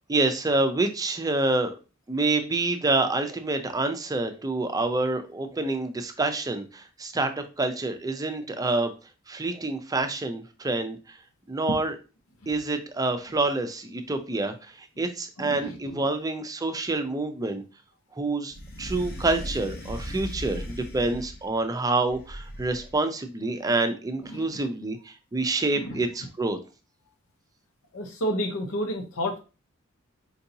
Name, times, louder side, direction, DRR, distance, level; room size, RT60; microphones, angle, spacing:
voice 1, 0.1-1.7 2.1-8.9 9.3-11.0 11.5-11.9 12.5-17.6 18.2-26.6, right 2 dB, 20° right, 7 dB, 0.4 m, -27 dB
voice 2, 15.4-16.1 24.2-24.5 25.7-26.0 27.9-29.4, equal, 90° left, 3 dB, 0.7 m, -31 dB
sound 1, 18.5-21.5 22.1-23.0, equal, 50° left, 0.8 m, -37 dB
4.5 x 2.7 x 2.7 m, 0.31 s
head